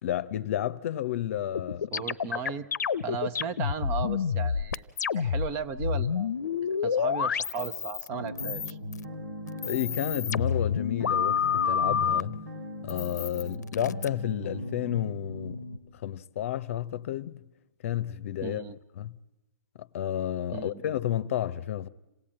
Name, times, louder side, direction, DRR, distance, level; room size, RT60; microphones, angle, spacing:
voice 1, 0.0-1.9 9.6-12.4 12.8-15.7 15.9-17.4 17.8-18.6 19.0-19.2 19.8-21.9, left 11 dB, 50° left, 0.8 m, -31 dB
sound 1, 1.5-5.5 5.7-8.1 8.4-9.0 9.5-12.2 12.9-14.1, left 7 dB, 85° left, 0.7 m, -28 dB
voice 2, 1.9-2.7 3.0-6.3 6.8-8.8 18.4-18.8 20.5-20.9, right 6 dB, 25° right, 0.8 m, -36 dB
sound 2, 8.1-15.8, equal, 85° right, 3.8 m, -38 dB
27.0 x 17.0 x 8.9 m
hypercardioid pair, 150°, 9 cm